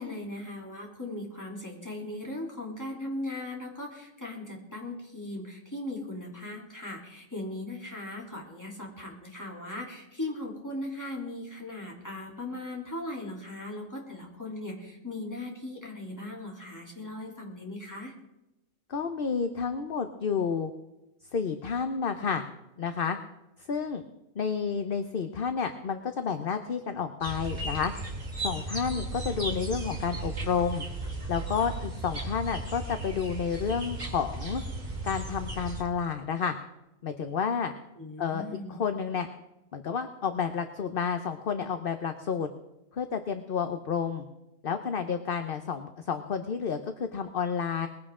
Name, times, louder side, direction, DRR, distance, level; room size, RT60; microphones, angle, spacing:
voice 1, 0.0-18.1 38.0-38.8, left 1 dB, 15° left, -2 dB, 3.3 m, -38 dB
voice 2, 18.9-20.7 21.3-22.4 22.8-23.2 23.7-24.0 24.4-27.9 28.4-30.9 31.3-34.6 35.0-36.6 37.0-37.7 38.2-39.3 39.7-42.5 42.9-44.3 44.6-47.9, left 6 dB, 45° left, 8 dB, 0.9 m, -30 dB
sound 1, 27.2-35.8, right 2 dB, 30° right, 2.2 m, -36 dB
20.5 x 15.5 x 3.7 m, 0.91 s
omnidirectional pair, 1.4 m